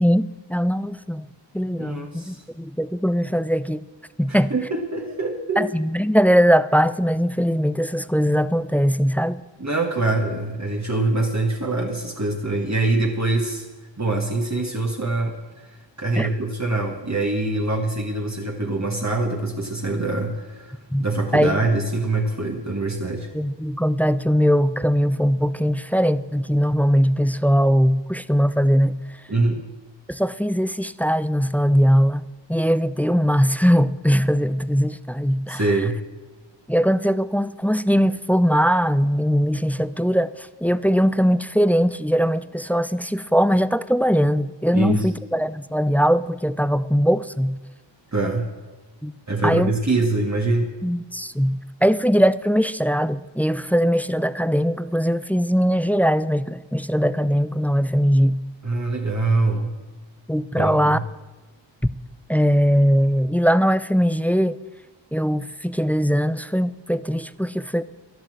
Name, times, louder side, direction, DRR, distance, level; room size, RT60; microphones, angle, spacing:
voice 1, 0.0-1.2 1.5-3.8 4.2-4.5 5.6-9.4 16.2-16.3 20.9-21.1 21.3-21.6 23.3-29.0 30.1-32.2 32.5-35.7 36.7-47.5 49.0-49.1 49.4-49.7 50.8-58.4 60.3-61.0 62.3-64.6 65.1-67.8, equal, 5° left, 0.4 m, -20 dB
voice 2, 1.8-2.4 4.3-5.7 9.6-13.6 14.0-15.4 16.0-23.3 29.3-29.6 35.5-36.0 44.7-45.1 48.1-48.5 49.3-50.7 58.6-59.7 60.5-61.0, right 2 dB, 35° right, 1.6 m, -24 dB
11.5 x 11.5 x 7.7 m
wide cardioid pair, 55°, 45 cm